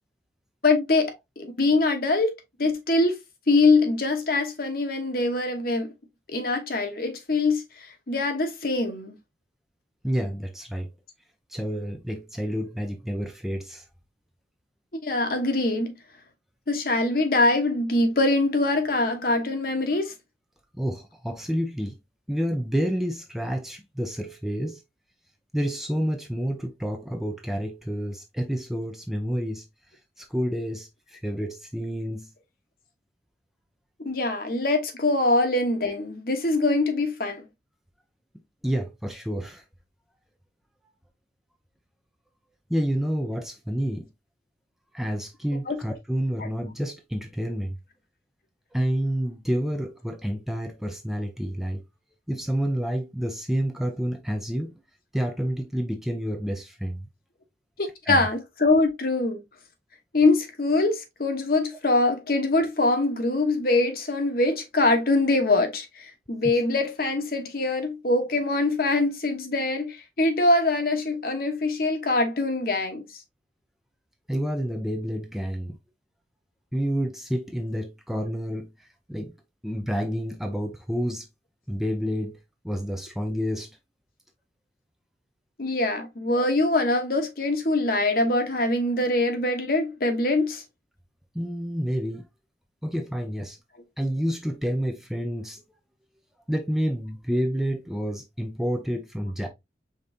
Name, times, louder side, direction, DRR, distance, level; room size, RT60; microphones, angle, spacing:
voice 1, 0.6-2.3 2.6-3.2 3.5-5.9 6.3-9.1 14.9-15.9 16.7-20.1 34.0-37.5 45.7-45.8 46.4-46.5 57.8-59.4 60.1-73.0 85.6-90.6, left 2 dB, 50° left, 1.1 m, -23 dB
voice 2, 10.0-10.9 11.5-13.9 20.7-22.0 22.3-24.8 25.5-29.6 30.2-32.3 38.6-39.6 42.7-44.1 44.9-47.8 48.7-51.8 52.3-54.8 55.1-57.1 58.1-58.3 74.3-75.8 76.7-79.3 79.6-81.3 81.7-82.4 82.6-83.8 91.3-92.3 92.8-93.6 94.0-95.6 96.5-99.5, equal, ahead, 0.5 m, -29 dB
5.2 x 3.8 x 2.7 m
head